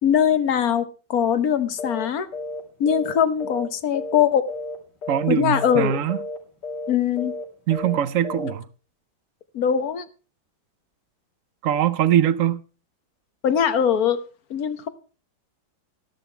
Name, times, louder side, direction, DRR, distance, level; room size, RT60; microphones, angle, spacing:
voice 1, 0.0-2.3 2.8-4.4 5.3-6.0 6.9-7.3 8.4-8.5 9.5-10.0 13.4-14.2 14.5-14.9, left 8 dB, 60° left, 1.4 m, -21 dB
sound 1, 1.8-2.1 2.3-2.6 2.9-4.2 4.5-4.8 5.0-5.3 5.5-5.8 6.1-6.4 6.6-6.9 7.2-7.4 7.7-8.0 8.2-8.5, left 2 dB, 85° left, 5.0 m, -32 dB
voice 2, 5.1-6.2 7.7-8.6 11.6-12.6, right 10 dB, 60° right, 1.0 m, -22 dB
13.0 x 13.0 x 3.4 m
omnidirectional pair, 1.8 m